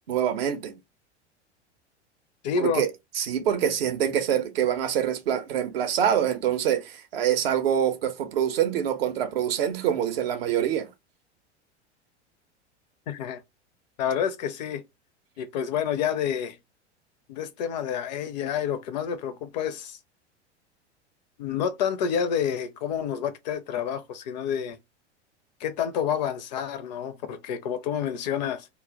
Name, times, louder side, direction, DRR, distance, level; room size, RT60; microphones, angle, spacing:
voice 1, 0.1-0.8 2.6-2.9 3.2-10.9, right 9 dB, 55° right, 0.6 m, -25 dB
voice 2, 2.4-2.8 13.1-13.4 14.0-14.8 15.4-16.6 17.3-20.0 21.4-24.8 25.6-28.7, left 8 dB, 40° left, 0.4 m, -29 dB
2.2 x 2.0 x 3.5 m
figure-of-eight pair, 85°, 35 cm